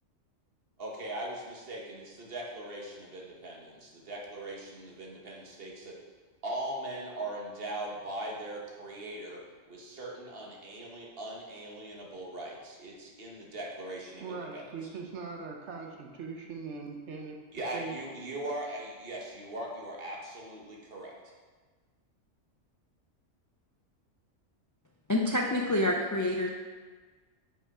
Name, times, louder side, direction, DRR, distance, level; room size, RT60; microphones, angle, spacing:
voice 1, 0.8-6.0 6.4-9.4 9.7-14.6 17.5-21.1, right 1 dB, 50° right, -2 dB, 1.4 m, -40 dB
voice 2, 14.2-17.4 17.7-17.9, right 5 dB, 65° right, 2 dB, 1.1 m, -40 dB
voice 3, 25.1-26.5, left 1 dB, 30° left, -1 dB, 0.3 m, -27 dB
5.5 x 5.4 x 4.8 m, 1.4 s
omnidirectional pair, 1.3 m